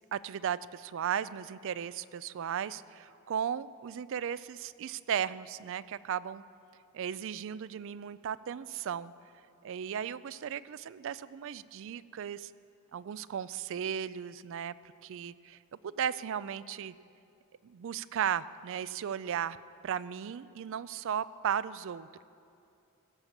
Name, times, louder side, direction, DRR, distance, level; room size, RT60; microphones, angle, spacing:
voice 1, 0.1-6.4 6.9-9.1 9.6-12.5 12.9-14.7 15.0-15.6 15.8-16.9 17.6-19.6 19.8-22.2, right 8 dB, 60° right, 18 dB, 0.3 m, -36 dB
17.0 x 7.1 x 7.3 m, 2.6 s
head